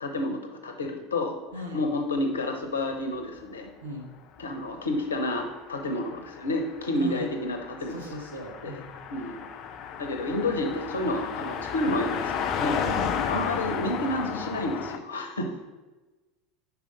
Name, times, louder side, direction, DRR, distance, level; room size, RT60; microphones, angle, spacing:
voice 1, 0.0-1.4 1.7-3.7 4.4-8.1 8.6-8.7 9.1-9.5 10.0-12.9 13.3-15.5, left 1 dB, 75° left, 4 dB, 0.8 m, -30 dB
Car passing by, 4.8-15.0, left 7 dB, 45° left, 0.5 m, -33 dB
voice 2, 6.9-7.3 7.9-8.9 12.8-13.1, right 1 dB, 75° right, 1 dB, 1.1 m, -37 dB
5.0 x 4.7 x 5.2 m, 1.2 s
figure-of-eight pair, 75°, 0 cm